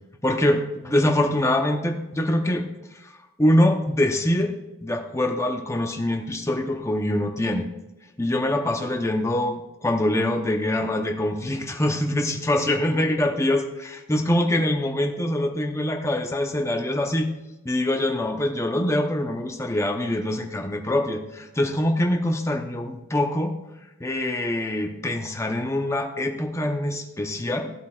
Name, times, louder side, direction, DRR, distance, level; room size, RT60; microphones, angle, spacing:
voice 1, 0.2-2.7 3.4-4.5 4.8-7.7 8.2-17.3 17.6-23.6 24.0-27.7, left 1 dB, 15° left, 4 dB, 0.8 m, -24 dB
15.0 x 8.1 x 2.4 m, 1.0 s
head